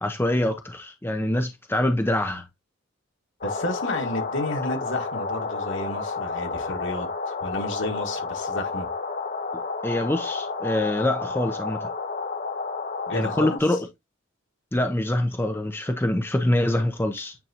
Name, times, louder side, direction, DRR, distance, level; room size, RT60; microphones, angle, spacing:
voice 1, 0.0-2.4 9.8-11.9 13.1-13.8 14.7-17.3, left 1 dB, 10° left, 0.7 m, -25 dB
voice 2, 3.4-8.9 13.1-13.8, left 1 dB, 65° left, 2.0 m, -31 dB
sound 1, 3.4-13.6, left 4 dB, 40° left, 1.0 m, -31 dB
9.2 x 3.8 x 2.9 m
head